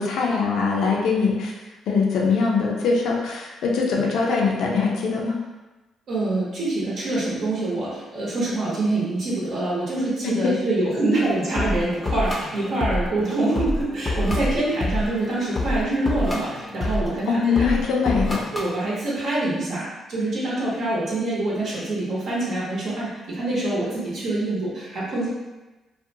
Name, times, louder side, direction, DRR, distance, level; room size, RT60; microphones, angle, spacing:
voice 1, 0.0-1.5 1.9-5.4 10.2-10.5 17.3-18.4, left 5 dB, 75° left, -2 dB, 0.4 m, -22 dB
voice 2, 6.1-17.6 18.5-25.3, right 2 dB, 65° right, -6 dB, 0.8 m, -25 dB
sound 1, 11.2-18.7, left 1 dB, 25° left, 0.5 m, -28 dB
2.4 x 2.1 x 2.7 m, 1.1 s
cardioid pair, 90°, 0 cm